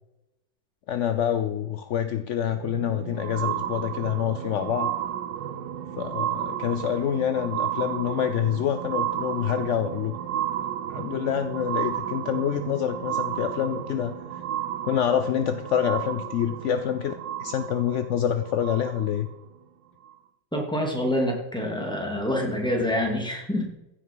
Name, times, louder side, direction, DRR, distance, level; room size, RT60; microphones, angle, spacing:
voice 1, 0.9-4.9 6.0-10.2 10.9-14.1 14.8-19.3, left 9 dB, 65° left, 10 dB, 0.7 m, -26 dB
sound 1, 2.5-19.3 20.1-20.2, right 10 dB, 75° right, 1.4 m, -33 dB
voice 2, 20.5-23.6, left 1 dB, ahead, 0 dB, 2.8 m, -26 dB
15.5 x 8.2 x 5.6 m, 0.94 s
omnidirectional pair, 1.9 m